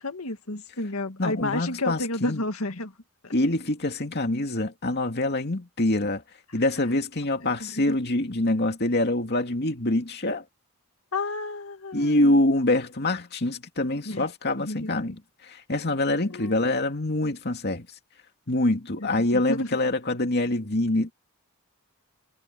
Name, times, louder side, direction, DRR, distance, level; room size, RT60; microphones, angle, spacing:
voice 1, 0.0-2.9 3.2-3.3 7.6-7.9 11.1-12.4 14.1-14.2 14.6-15.2 16.3-16.7 19.3-19.7, left 2 dB, 80° left, 2.2 m, -31 dB
voice 2, 1.2-2.4 3.3-6.2 6.5-10.4 11.9-17.9 18.5-21.1, left 1 dB, 50° left, 2.5 m, -25 dB
head